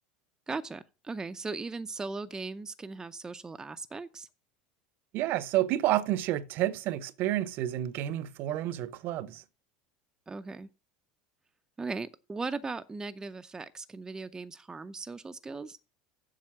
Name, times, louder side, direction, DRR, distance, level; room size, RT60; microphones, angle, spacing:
voice 1, 0.5-4.3 10.3-10.7 11.8-15.8, right 3 dB, 15° right, 0.6 m, -38 dB
voice 2, 5.1-9.4, right 14 dB, 55° right, 0.8 m, -30 dB
7.6 x 5.5 x 7.2 m
hypercardioid pair, 90°, 4 cm